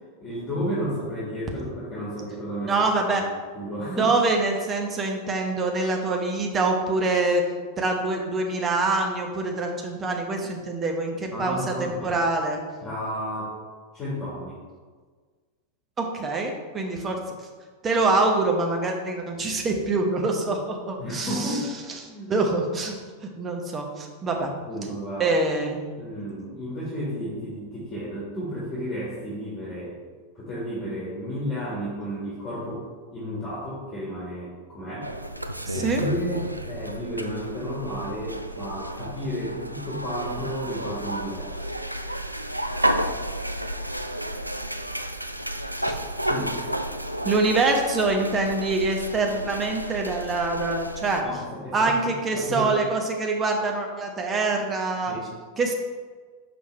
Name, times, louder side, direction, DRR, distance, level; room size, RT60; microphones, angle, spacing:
voice 1, 0.2-2.7 3.2-3.3 3.5-4.2 11.3-12.2 12.8-13.6 13.9-14.6 21.0-21.7 22.1-22.3 24.7-25.3 26.0-30.0 30.4-32.8 33.1-35.1 35.7-41.5 46.3-46.6 51.2-52.7 55.1-55.3, equal, 25° left, -6 dB, 1.8 m, -32 dB
voice 2, 2.7-3.3 3.9-7.5 7.8-12.6 16.0-17.4 17.8-21.6 22.3-23.0 23.4-24.5 25.2-25.8 35.7-36.0 45.9-46.0 47.2-51.2 51.7-55.1 55.6-55.7, right 3 dB, 20° right, 2 dB, 1.0 m, -25 dB
sound 1, 35.0-51.2, right 1 dB, 90° right, 0.3 m, -31 dB
6.1 x 5.4 x 3.3 m, 1.5 s
figure-of-eight pair, 90°, 0 cm